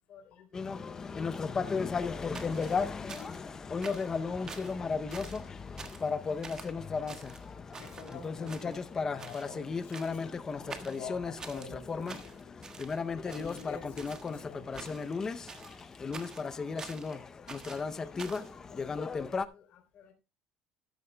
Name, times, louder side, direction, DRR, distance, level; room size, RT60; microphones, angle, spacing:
voice 1, 0.1-1.1 17.1-20.1, left 7 dB, 40° left, 3 dB, 3.4 m, -58 dB
sound 1, 0.5-19.5, left 5 dB, 20° left, 0.6 m, -35 dB
sound 2, 2.3-3.5 3.8-4.2 4.5-4.8 5.1-5.5 5.8-6.1 6.4-6.7 7.1-8.2 8.5-8.9 9.2-9.5 9.9-10.3 10.7-11.7 12.1-13.0 13.3-14.3 14.7-15.2 15.5-17.1 17.5-18.5, right 5 dB, 20° right, 1.3 m, -47 dB
voice 2, 7.8-12.4 13.2-14.8, left 5 dB, 65° left, 2 dB, 3.1 m, -47 dB
13.5 x 13.0 x 2.2 m, 0.27 s
cardioid pair, 160°, 3 cm